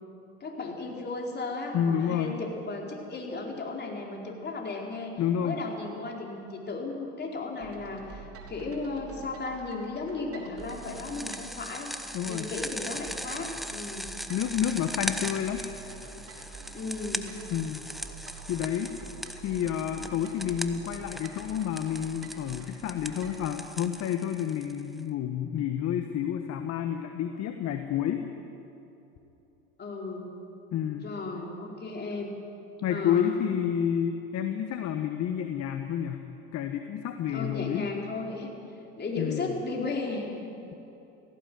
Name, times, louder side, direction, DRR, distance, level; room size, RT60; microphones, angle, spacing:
voice 1, 0.4-5.1 5.4-11.9 12.3-14.1 16.7-17.3 29.8-30.2 30.9-32.3 32.9-33.4 37.3-38.5 39.0-40.5, left 3 dB, 30° left, 0 dB, 4.4 m, -35 dB
voice 2, 1.7-2.3 5.2-5.6 12.1-12.5 14.3-15.6 17.5-17.8 18.5-18.9 19.4-28.3 30.7-31.1 32.8-36.2 36.5-37.9 39.2-39.5, left 9 dB, 50° left, 7 dB, 1.4 m, -29 dB
sound 1, 7.6-23.5, right 4 dB, 45° right, 3.7 m, -47 dB
sound 2, 10.7-25.0, equal, ahead, 1.1 m, -39 dB
17.5 x 16.0 x 9.4 m, 3.0 s
hypercardioid pair, 85°, 32 cm